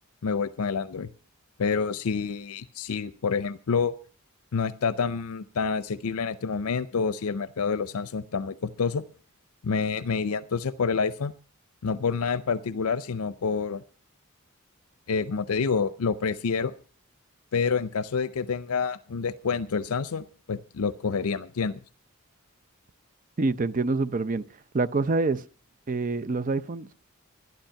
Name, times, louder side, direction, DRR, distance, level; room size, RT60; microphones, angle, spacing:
voice 1, 0.2-1.1 1.6-3.9 4.5-9.0 9.6-11.3 11.8-13.8 15.1-16.7 17.5-21.8, left 5 dB, 85° left, 0.5 m, -28 dB
voice 2, 23.4-24.4 24.7-25.4 25.9-26.9, right 3 dB, 35° right, 0.5 m, -26 dB
12.0 x 12.0 x 5.7 m
head